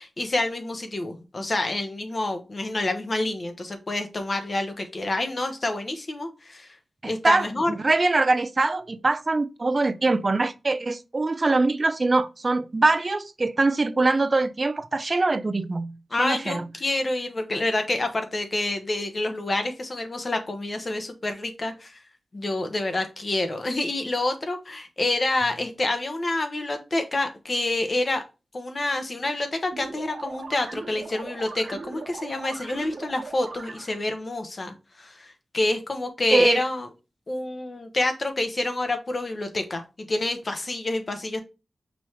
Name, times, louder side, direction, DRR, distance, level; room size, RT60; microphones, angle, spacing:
voice 1, 0.0-6.7 7.0-7.7 16.1-22.0 22.3-28.2 28.5-36.9 37.3-41.4, left 2 dB, 45° left, 0.9 m, -28 dB
voice 2, 7.0-16.7 36.3-36.6, right 3 dB, 40° right, 0.5 m, -23 dB
sound 1, 29.7-34.1, right 4 dB, 70° right, 1.3 m, -39 dB
5.4 x 3.0 x 3.1 m
wide cardioid pair, 85°, 0 cm